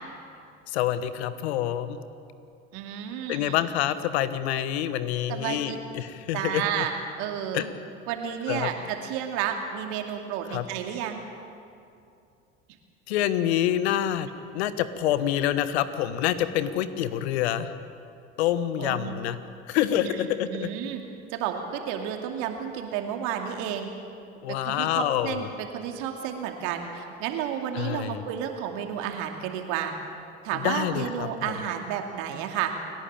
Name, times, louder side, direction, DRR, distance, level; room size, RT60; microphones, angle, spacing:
voice 1, 0.7-2.0 3.3-6.8 7.5-7.7 8.5-8.7 10.5-10.6 13.1-14.3 14.5-17.7 18.4-19.4 19.7-20.7 24.4-25.5 27.7-28.2 30.5-31.5, left 11 dB, 80° left, 13 dB, 1.2 m, -27 dB
voice 2, 2.7-3.5 5.3-5.8 6.3-6.9 7.2-7.6 8.1-11.2 18.8-19.1 20.0-20.2 20.5-21.0 21.3-23.9 24.5-29.9 30.4-32.7, right 9 dB, 70° right, 4 dB, 2.6 m, -31 dB
29.5 x 11.0 x 8.8 m, 2.5 s
hypercardioid pair, 65°, 32 cm